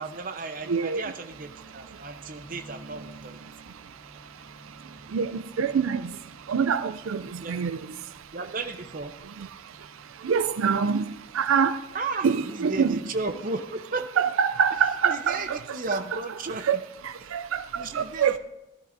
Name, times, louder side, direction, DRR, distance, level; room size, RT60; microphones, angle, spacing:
voice 1, 0.0-3.4 7.4-7.6 8.3-9.2 11.9-14.1 15.0-16.7 17.2-17.3 17.7-18.4, right 3 dB, 40° right, 0.8 m, -34 dB
voice 2, 0.7-1.0 5.1-5.3 5.6-6.0 6.5-7.2 7.5-7.8 10.2-11.0 11.3-11.8 12.2-12.9 14.2-15.6 16.7-16.8 17.3-17.6 17.9-18.4, right 6 dB, 90° right, 0.4 m, -24 dB
sound 1, 1.3-11.5, right 1 dB, 15° right, 2.0 m, -51 dB
17.5 x 12.0 x 2.6 m
head